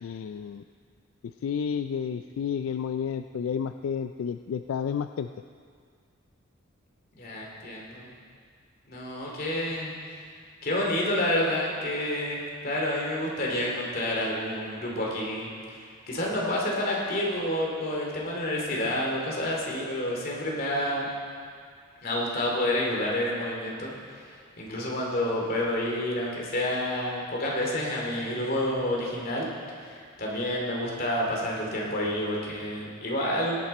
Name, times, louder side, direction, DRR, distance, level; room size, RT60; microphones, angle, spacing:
voice 1, 0.0-0.6 1.4-5.3, left 7 dB, 80° left, 9 dB, 0.3 m, -31 dB
voice 2, 7.2-8.1 8.9-9.9 10.6-15.8 16.1-21.1 22.0-23.9 24.6-29.5 30.2-33.6, left 1 dB, 45° left, -3 dB, 2.5 m, -29 dB
18.0 x 8.8 x 4.2 m, 2.1 s
head